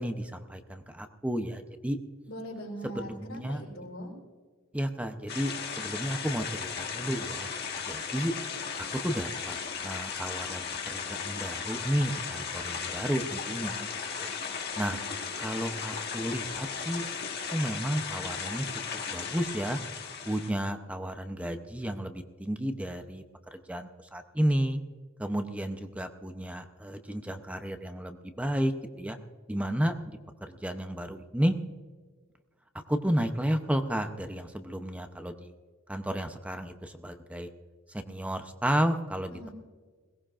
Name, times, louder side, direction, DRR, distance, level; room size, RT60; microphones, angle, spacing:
voice 1, 0.0-2.0 3.1-3.6 4.7-7.5 7.9-8.3 8.9-9.6 9.8-13.9 14.1-14.3 14.8-15.0 15.4-17.1 17.5-18.6 19.1-19.8 20.2-23.2 23.5-24.8 25.2-29.2 29.5-31.6 32.9-35.5 35.9-37.5 37.9-39.5, equal, 5° right, 7 dB, 0.7 m, -32 dB
voice 2, 2.3-4.1 39.3-39.5, equal, 75° left, -6 dB, 3.8 m, -41 dB
sound 1, 5.3-20.5, left 6 dB, 50° left, 1.5 m, -36 dB
21.5 x 18.0 x 2.5 m, 1.5 s
head